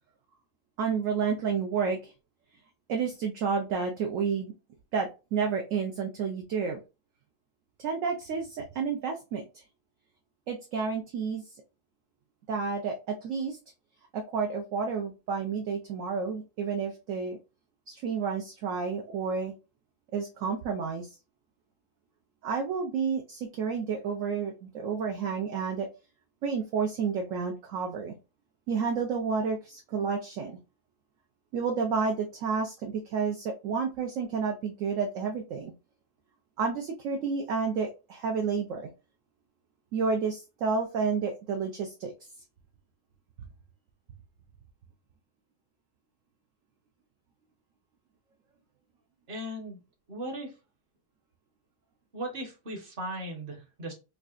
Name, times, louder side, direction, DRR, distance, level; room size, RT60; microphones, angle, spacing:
voice 1, 0.8-2.1 2.9-4.5 4.9-6.8 7.8-9.6 10.5-11.4 12.5-13.6 14.1-17.4 17.9-19.5 20.1-21.1 22.4-25.9 26.4-28.2 28.7-30.6 31.5-35.7 36.6-38.9 39.9-42.1, right 5 dB, 65° right, 3 dB, 0.8 m, -30 dB
voice 2, 49.3-49.8 50.1-50.5 52.1-53.9, right 1 dB, 35° right, 2 dB, 1.2 m, -37 dB
4.7 x 2.4 x 2.4 m, 0.29 s
omnidirectional pair, 1.8 m